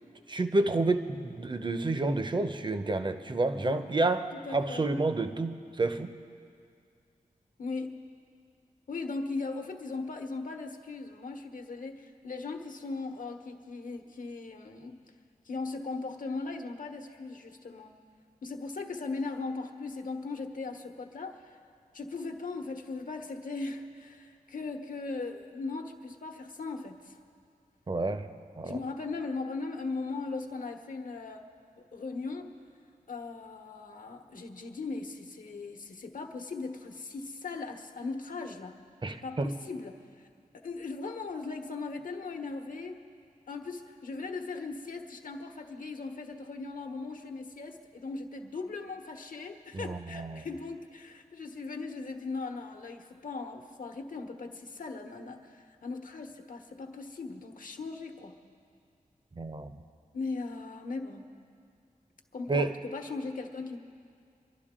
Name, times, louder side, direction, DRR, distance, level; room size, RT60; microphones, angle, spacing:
voice 1, 0.3-6.2 27.9-28.3 28.6-28.8 39.0-39.5 49.7-50.4 59.4-59.7 62.5-62.8, right 2 dB, 30° right, 9 dB, 0.7 m, -29 dB
voice 2, 4.4-5.0 7.6-8.0 8.9-15.0 15.4-18.0 18.4-21.4 21.9-27.2 28.6-31.5 31.9-32.5 33.1-38.8 39.1-40.3 40.5-43.0 43.5-58.4 60.1-61.3 62.3-63.8, left 3 dB, 65° left, 5 dB, 1.1 m, -38 dB
25.0 x 11.5 x 3.7 m, 2.3 s
wide cardioid pair, 95°, 15 cm